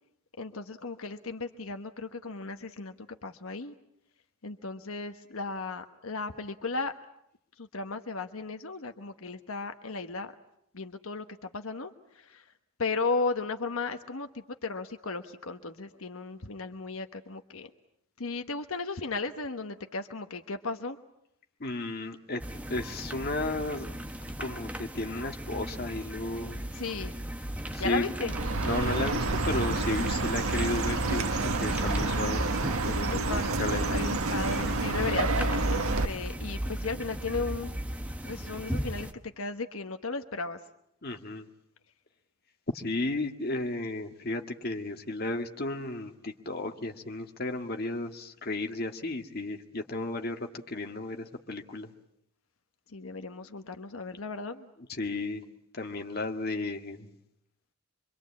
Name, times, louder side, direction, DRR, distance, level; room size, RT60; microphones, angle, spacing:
voice 1, 0.4-3.7 4.4-6.9 7.6-10.3 10.7-12.4 12.8-17.7 18.2-21.0 26.7-27.2 27.8-28.3 33.1-33.5 33.9-37.7 38.2-39.1 39.4-40.6 52.9-54.7, left 3 dB, 75° left, 7 dB, 1.2 m, -35 dB
voice 2, 21.6-22.4 22.7-23.9 24.4-26.6 27.7-28.1 28.6-32.4 32.8-33.3 33.6-33.9 41.0-41.5 42.7-50.4 50.7-51.9 54.9-55.4 55.7-57.1, left 2 dB, 45° left, 4 dB, 1.8 m, -33 dB
sound 1, 22.4-39.1, equal, 5° right, 1.1 m, -36 dB
Chirp tweet, 28.3-36.1, right 3 dB, 80° right, 1.5 m, -29 dB
25.5 x 25.0 x 8.5 m, 0.77 s
head